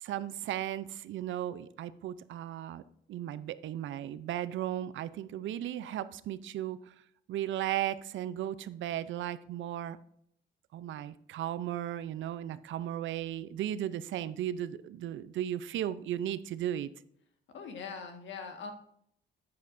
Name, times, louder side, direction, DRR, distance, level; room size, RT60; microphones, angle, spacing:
voice 1, 0.0-2.8 3.1-6.9 7.3-10.0 10.7-16.9, right 11 dB, 75° right, 15 dB, 0.6 m, -36 dB
voice 2, 17.5-18.7, left 5 dB, 70° left, 5 dB, 1.7 m, -42 dB
9.6 x 8.4 x 2.6 m, 0.70 s
cardioid pair, 90°, 20 cm